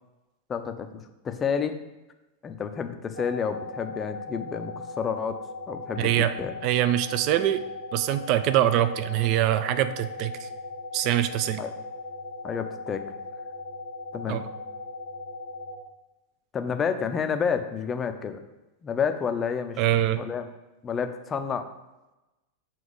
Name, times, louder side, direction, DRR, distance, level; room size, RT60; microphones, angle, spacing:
voice 1, 0.5-1.8 2.4-6.5 11.6-11.7 12.4-13.1 14.1-14.4 16.5-18.4 18.8-19.8 20.1-20.5 20.8-21.7, left 6 dB, 20° left, 8 dB, 0.5 m, -30 dB
sound 1, 3.1-15.7, left 2 dB, 65° right, 1.8 m, -38 dB
voice 2, 6.0-6.3 6.6-7.6 7.9-10.5 10.9-11.6 14.3-14.5 19.8-20.2, right 12 dB, 40° right, 12 dB, 0.4 m, -24 dB
7.0 x 3.1 x 5.2 m, 1.0 s
figure-of-eight pair, 90°, 0 cm